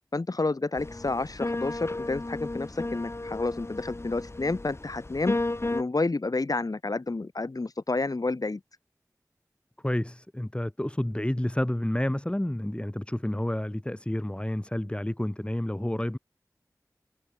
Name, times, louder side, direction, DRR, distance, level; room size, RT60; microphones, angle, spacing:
voice 1, 0.1-5.4 5.7-8.6, left 3 dB, 65° left, 1.8 m, -30 dB
sound 1, 0.8-5.8, left 2 dB, 40° left, 1.0 m, -34 dB
voice 2, 9.8-16.2, left 1 dB, 15° left, 1.7 m, -30 dB
wide cardioid pair, 55°, 7 cm